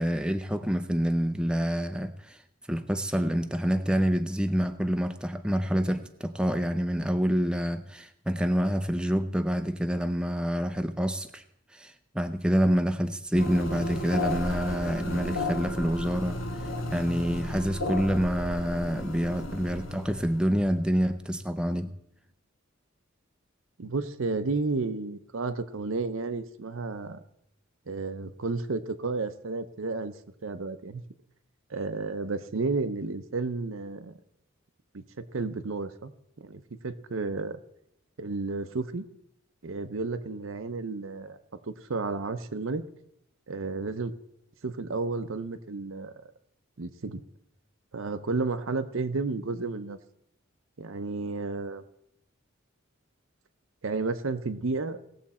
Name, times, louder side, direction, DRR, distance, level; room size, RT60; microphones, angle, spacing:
voice 1, 0.0-2.4 2.7-11.4 11.7-21.9, equal, 5° right, 7 dB, 0.5 m, -27 dB
sound 1, 13.4-21.3, left 1 dB, 70° left, 1.3 m, -34 dB
voice 2, 23.8-27.2 27.9-30.2 30.4-31.0 31.7-34.2 34.9-36.1 36.4-37.6 38.2-39.0 39.6-41.4 41.7-42.8 43.5-44.1 44.6-46.1 46.8-47.2 47.9-50.0 50.8-51.8 53.8-55.0, right 3 dB, 70° right, 11 dB, 0.7 m, -32 dB
18.0 x 7.3 x 4.2 m, 0.78 s
head